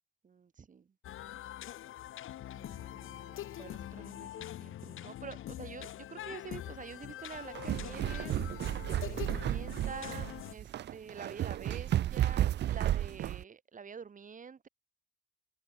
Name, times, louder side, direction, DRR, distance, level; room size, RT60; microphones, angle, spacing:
voice 1, 0.2-0.9 2.5-8.3 9.0-14.7, right 6 dB, 40° right, 1.9 m, -47 dB
sound 1, 1.0-10.5, left 12 dB, 85° left, 2.9 m, -44 dB
sound 2, 7.4-13.4, right 12 dB, 60° right, 0.5 m, -33 dB
cardioid pair, 100°, 20 cm